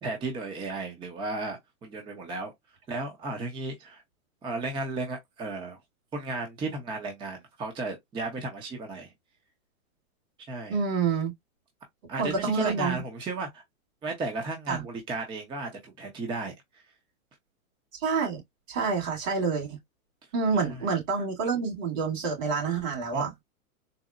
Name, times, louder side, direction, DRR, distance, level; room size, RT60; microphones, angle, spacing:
voice 1, 0.0-2.5 2.9-4.0 4.4-5.8 6.1-9.1 10.5-10.8 12.1-13.6 14.0-16.5 20.6-20.9 23.1-23.4, right 3 dB, 10° right, 0.6 m, -34 dB
voice 2, 10.7-11.3 12.2-13.0 14.7-14.8 18.0-18.4 18.7-19.8 20.3-23.3, right 5 dB, 65° right, 2.4 m, -27 dB
4.0 x 2.0 x 2.3 m
hypercardioid pair, 125°, 43 cm